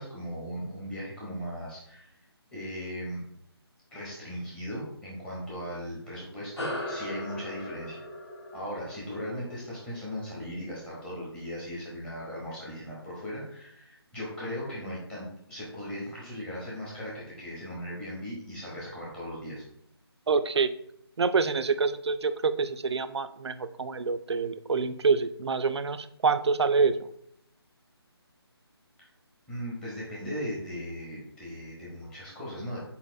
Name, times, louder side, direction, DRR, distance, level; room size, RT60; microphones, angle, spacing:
voice 1, 0.0-2.1 2.5-3.2 3.9-8.0 8.5-19.6 29.0-29.1 29.5-32.8, equal, 5° left, -7 dB, 0.8 m, -38 dB
sound 1, 6.6-11.4, left 1 dB, 85° left, 1.1 m, -39 dB
voice 2, 20.3-20.7 21.2-27.0, right 5 dB, 80° right, 11 dB, 0.4 m, -26 dB
4.2 x 4.0 x 2.6 m, 0.72 s
figure-of-eight pair, 160°, 14 cm